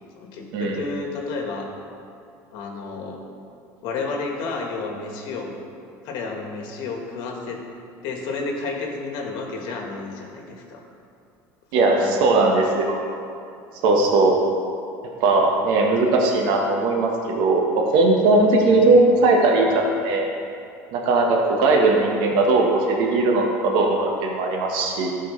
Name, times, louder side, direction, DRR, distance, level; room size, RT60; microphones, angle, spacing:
voice 1, 0.1-1.7 2.5-3.2 3.8-5.5 6.0-7.6 8.0-10.8 11.7-12.5 18.7-19.0, left 3 dB, 70° left, 1 dB, 1.4 m, -31 dB
voice 2, 11.7-13.0 13.8-14.3 15.2-17.6 17.9-20.2 20.9-25.1, right 2 dB, 70° right, 0 dB, 1.1 m, -19 dB
13.0 x 4.6 x 3.2 m, 2.5 s
supercardioid pair, 90°, 8 cm